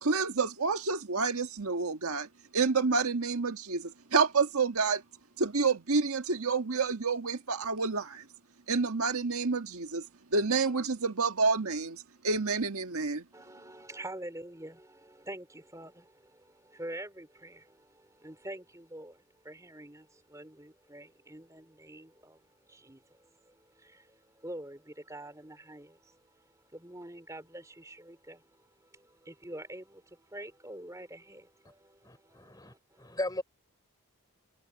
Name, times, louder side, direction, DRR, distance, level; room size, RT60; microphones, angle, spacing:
voice 1, 0.0-5.0 5.4-8.2 8.7-10.0 10.3-13.2, right 4 dB, 75° right, 1.5 m, -29 dB
voice 2, 13.3-33.2, right 1 dB, 15° right, 3.5 m, -47 dB
voice 3, 32.0-33.4, left 1 dB, 15° left, 4.2 m, -37 dB
head